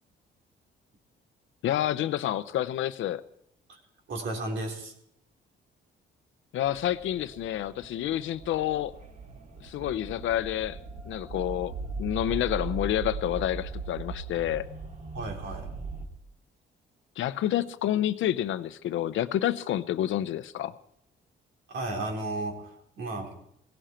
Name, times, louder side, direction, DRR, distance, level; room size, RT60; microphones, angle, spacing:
voice 1, 1.6-3.2 6.5-8.9 9.6-10.8 11.1-11.7 12.0-14.7 17.2-20.8, left 12 dB, 80° left, 14 dB, 0.8 m, -29 dB
voice 2, 4.1-4.9 15.1-15.7 21.7-23.3, right 2 dB, 70° right, 1 dB, 3.8 m, -34 dB
sound 1, 6.6-16.1, right 3 dB, 40° right, 2.9 m, -39 dB
17.5 x 17.0 x 4.4 m, 0.75 s
cardioid pair, 90°, 20 cm